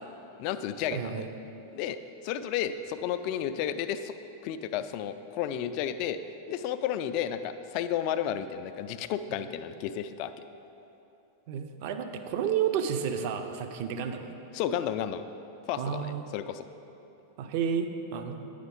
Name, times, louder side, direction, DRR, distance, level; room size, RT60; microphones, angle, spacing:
voice 1, 0.4-1.3 1.7-2.0 2.2-4.1 4.4-6.2 6.5-10.3 14.5-15.2 15.7-16.7, left 9 dB, 45° left, 11 dB, 0.3 m, -32 dB
voice 2, 0.9-1.3 11.5-14.4 15.8-16.3 17.4-18.4, right 7 dB, 45° right, 7 dB, 0.5 m, -31 dB
9.6 x 5.0 x 5.2 m, 2.9 s
figure-of-eight pair, 90°, 0 cm